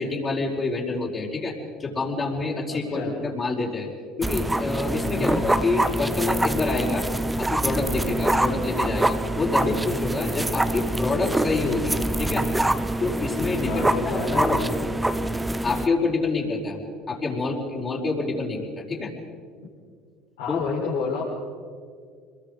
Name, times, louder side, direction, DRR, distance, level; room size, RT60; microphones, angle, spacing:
voice 1, 0.0-1.5 1.8-3.9 4.2-7.1 7.4-12.5 13.0-14.6 15.6-16.8 17.1-19.1 20.5-20.6, left 3 dB, 30° left, -4 dB, 5.0 m, -27 dB
voice 2, 2.7-3.1 5.1-5.4 9.5-9.7 13.7-14.4 20.4-21.2, left 5 dB, 80° left, -5 dB, 5.3 m, -29 dB
sound 1, 4.2-15.9, right 1 dB, 10° right, 1.0 m, -25 dB
26.0 x 22.5 x 5.3 m, 2.1 s
supercardioid pair, 85°, 0 cm